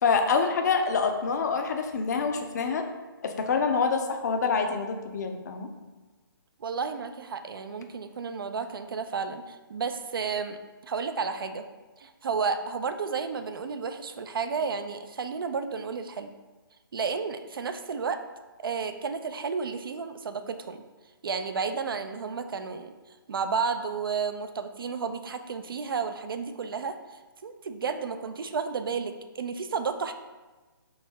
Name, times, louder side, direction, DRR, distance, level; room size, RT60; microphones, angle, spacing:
voice 1, 0.0-2.8 3.2-5.7, left 5 dB, 45° left, 5 dB, 0.5 m, -26 dB
voice 2, 6.6-10.6 10.8-11.6 12.0-16.3 16.9-18.2 18.6-20.8 21.2-22.9 23.3-30.1, right 5 dB, 65° right, 8 dB, 0.4 m, -32 dB
3.9 x 2.6 x 4.0 m, 1.3 s
figure-of-eight pair, 145°, 12 cm